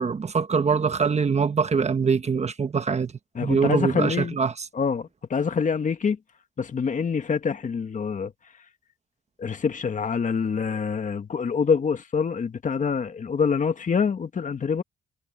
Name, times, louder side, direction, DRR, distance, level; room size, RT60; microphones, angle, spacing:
voice 1, 0.0-3.1 3.4-4.6, right 5 dB, 35° right, 1.3 m, -23 dB
voice 2, 3.4-4.4 4.7-6.2 6.6-8.3 9.4-14.8, left 6 dB, 40° left, 1.8 m, -25 dB
cardioid pair, 90°, 20 cm